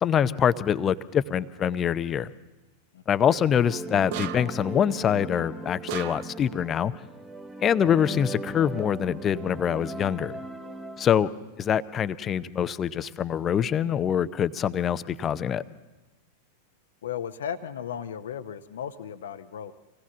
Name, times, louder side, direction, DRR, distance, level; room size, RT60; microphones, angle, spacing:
voice 1, 0.0-2.3 3.1-6.9 7.6-10.4 11.0-11.3 11.6-15.6, left 8 dB, 25° left, 15 dB, 0.7 m, -24 dB
sound 1, 3.3-11.1, right 2 dB, 10° right, 1.4 m, -39 dB
sound 2, 4.1-4.7 5.9-6.5, right 13 dB, 50° right, 0.6 m, -35 dB
voice 2, 17.0-19.7, left 8 dB, 60° left, 11 dB, 0.8 m, -35 dB
25.5 x 18.0 x 7.2 m, 1.1 s
figure-of-eight pair, 90°, 0 cm